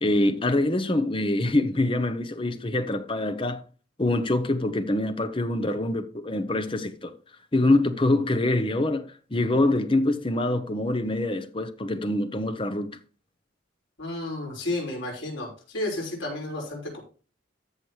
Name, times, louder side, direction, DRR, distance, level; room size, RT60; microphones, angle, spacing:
voice 1, 0.0-3.6 4.0-7.1 7.5-13.0, left 2 dB, 25° left, 0.9 m, -25 dB
voice 2, 14.0-17.0, left 2 dB, 90° left, 5.6 m, -32 dB
14.0 x 6.9 x 3.3 m
head